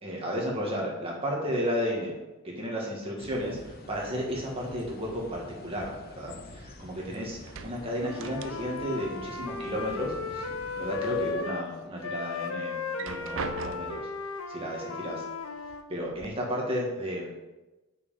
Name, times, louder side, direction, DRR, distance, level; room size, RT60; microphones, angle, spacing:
voice 1, 0.0-2.2 2.4-10.5 10.8-14.1 14.5-15.2 15.9-17.3, equal, 25° right, -3 dB, 1.9 m, -33 dB
sound 1, 3.2-11.3, left 2 dB, 45° left, 0.8 m, -47 dB
sound 2, 5.8-7.0 7.3-9.0 9.2-10.2 10.6-11.4 11.9-12.0 12.8-14.2 15.1-15.2 15.6-16.3, right 5 dB, 65° right, 0.5 m, -41 dB
Wind instrument woodwind instrument, 8.0-11.7 12.0-15.9, left 5 dB, 80° left, 0.7 m, -36 dB
6.5 x 5.4 x 7.1 m, 1.1 s
head